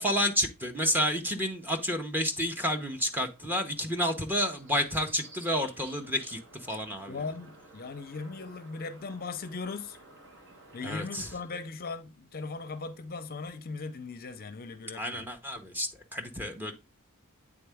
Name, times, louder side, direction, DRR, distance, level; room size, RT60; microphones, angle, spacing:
voice 1, 0.0-7.3 10.8-11.3 14.9-16.7, equal, 10° right, 0.8 m, -30 dB
sound 1, 1.5-11.4, right 2 dB, 55° right, 1.7 m, -54 dB
voice 2, 7.1-10.0 10.7-15.2, left 4 dB, 40° left, 0.6 m, -38 dB
8.6 x 3.7 x 3.4 m
head